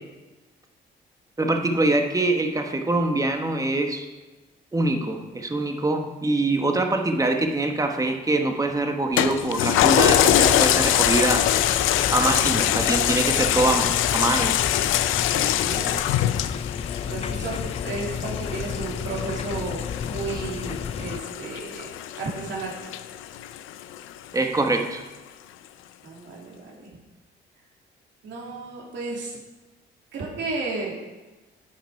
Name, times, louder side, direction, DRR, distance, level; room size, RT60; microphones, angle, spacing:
voice 1, 1.4-4.1 4.7-11.5 12.1-14.6 24.3-25.0, right 2 dB, 15° right, 4 dB, 1.2 m, -24 dB
Toilet flush, 9.2-24.0 24.5-24.6, left 12 dB, 90° left, 0.5 m, -24 dB
sound 1, 9.8-21.2, left 6 dB, 30° left, 0.4 m, -32 dB
voice 2, 15.3-16.0 17.1-22.8 26.0-26.9 28.2-29.3 30.1-30.9, right 3 dB, 65° right, -3 dB, 2.8 m, -33 dB
9.0 x 8.2 x 4.7 m, 1.1 s
cardioid pair, 90°, 20 cm